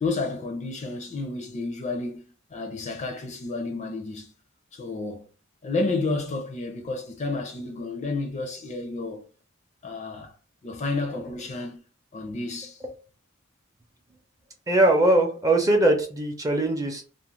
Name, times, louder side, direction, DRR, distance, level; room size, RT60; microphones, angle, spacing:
voice 1, 0.0-4.3 4.7-5.3 5.6-9.2 9.8-10.3 10.6-11.8 12.1-12.8, left 3 dB, 35° left, 0.4 m, -31 dB
voice 2, 14.7-17.0, right 1 dB, 15° right, 0.5 m, -21 dB
2.4 x 2.0 x 3.0 m
head